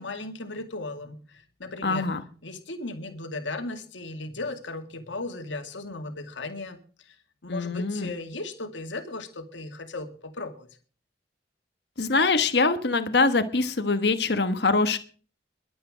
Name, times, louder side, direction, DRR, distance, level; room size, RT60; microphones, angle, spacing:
voice 1, 0.0-2.1 2.4-7.2 7.4-10.7, left 2 dB, 85° left, 6 dB, 2.2 m, -36 dB
voice 2, 1.8-2.2 7.5-8.1 12.0-15.0, left 3 dB, 65° left, 10 dB, 1.2 m, -23 dB
22.0 x 8.6 x 5.0 m, 0.42 s
head